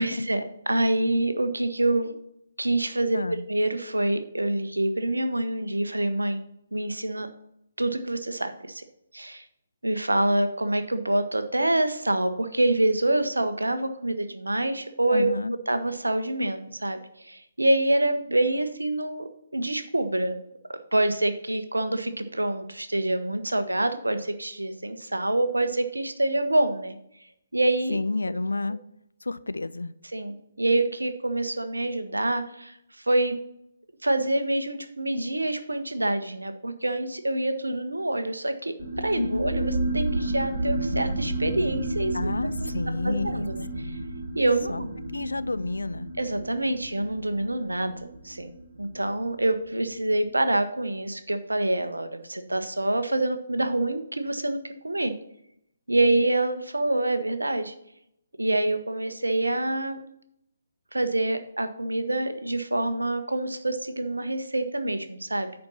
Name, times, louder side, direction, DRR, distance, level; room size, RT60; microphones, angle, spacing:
voice 1, 0.0-2.1 2.6-6.4 6.7-7.3 7.8-8.8 9.1-9.4 9.8-15.4 15.7-20.4 20.9-27.0 27.5-28.0 30.0-32.8 33.1-33.4 34.0-42.3 42.6-42.7 43.0-44.0 44.3-45.0 46.2-48.5 48.8-55.1 55.9-57.7 58.4-60.0 60.9-65.7, right 1 dB, 75° right, 9 dB, 1.0 m, -26 dB
voice 2, 15.1-15.5 27.9-28.8 29.3-29.9 39.2-39.5 42.1-43.4 43.7-44.0 44.7-44.8 45.1-46.1, left 2 dB, 70° left, 14 dB, 0.5 m, -30 dB
sound 1, 38.8-49.9, right 1 dB, 45° right, 2.5 m, -32 dB
9.7 x 4.4 x 5.5 m, 0.77 s
figure-of-eight pair, 140°, 0 cm